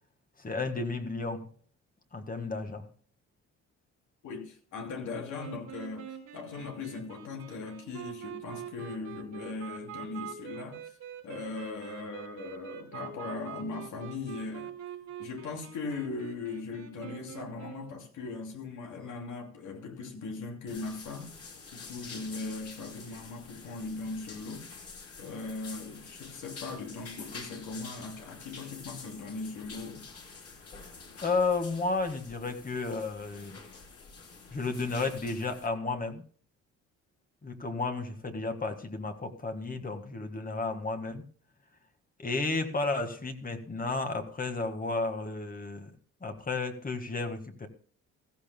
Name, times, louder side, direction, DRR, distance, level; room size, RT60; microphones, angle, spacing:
voice 1, 0.4-1.5 2.1-2.9 31.2-33.6 34.5-36.2 37.4-41.3 42.2-45.9 46.2-47.7, left 3 dB, 30° left, 1.8 m, -32 dB
voice 2, 4.2-10.8 11.2-14.7 15.2-21.3 21.7-24.7 25.2-30.1, left 3 dB, 75° left, 2.9 m, -39 dB
sound 1, 5.4-18.0, right 8 dB, 75° right, 3.0 m, -45 dB
sound 2, 20.7-35.7, left 4 dB, 50° left, 3.6 m, -48 dB
15.0 x 14.5 x 2.2 m
cardioid pair, 90°, 30 cm